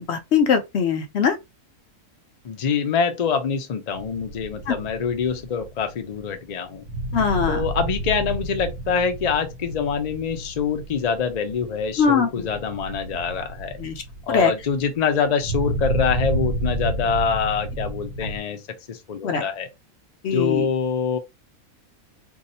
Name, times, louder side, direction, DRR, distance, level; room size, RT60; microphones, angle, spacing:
voice 1, 0.0-1.4 4.7-4.8 7.1-7.6 12.0-12.5 13.8-14.0 14.3-14.5 19.2-19.4 20.2-20.7, left 6 dB, 55° left, 0.8 m, -21 dB
voice 2, 2.4-6.8 7.5-13.8 14.3-18.6 18.9-19.7 20.3-21.2, left 6 dB, 75° left, 0.3 m, -25 dB
sound 1, 3.9-18.4, right 1 dB, 45° right, 0.9 m, -31 dB
2.7 x 2.3 x 4.0 m
omnidirectional pair, 1.5 m